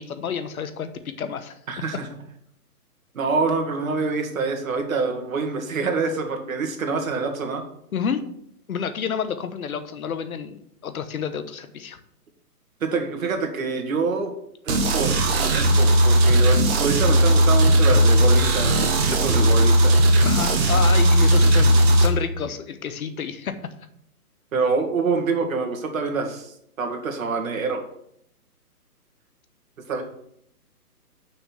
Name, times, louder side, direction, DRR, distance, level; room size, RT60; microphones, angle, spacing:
voice 1, 0.0-1.5 7.9-8.2 8.7-12.0 20.2-23.6, left 7 dB, 65° left, 10 dB, 1.2 m, -29 dB
voice 2, 1.7-2.1 3.1-7.6 12.8-14.3 14.6-20.0 24.5-27.9 29.9-30.0, right 4 dB, 60° right, 3 dB, 2.2 m, -26 dB
sound 1, 14.7-22.1, right 1 dB, 40° right, 1.8 m, -17 dB
6.5 x 6.2 x 7.2 m, 0.72 s
hypercardioid pair, 155°, 46 cm